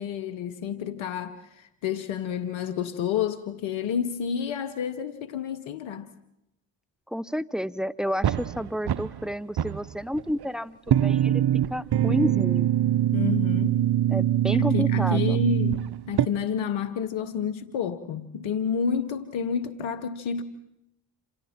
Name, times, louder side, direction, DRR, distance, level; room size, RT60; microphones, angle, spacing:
voice 1, 0.0-6.1 13.1-13.9 14.6-20.4, left 7 dB, 90° left, 1.0 m, -30 dB
voice 2, 7.1-11.4 11.7-12.7 14.1-15.4, equal, ahead, 1.0 m, -30 dB
sound 1, 8.2-9.3 9.6-10.4 10.9-16.3, right 11 dB, 55° right, 0.8 m, -23 dB
28.0 x 27.0 x 4.4 m
supercardioid pair, 40°, 47 cm